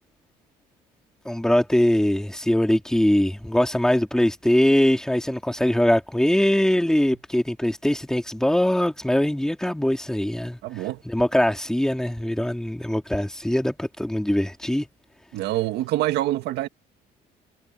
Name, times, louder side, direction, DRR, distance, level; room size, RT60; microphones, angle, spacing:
voice 1, 1.2-10.6 11.0-14.9, left 1 dB, 5° left, 3.3 m, -22 dB
voice 2, 10.6-11.0 15.3-16.7, right 15 dB, 85° right, 1.8 m, -25 dB
cardioid pair, 110°, 17 cm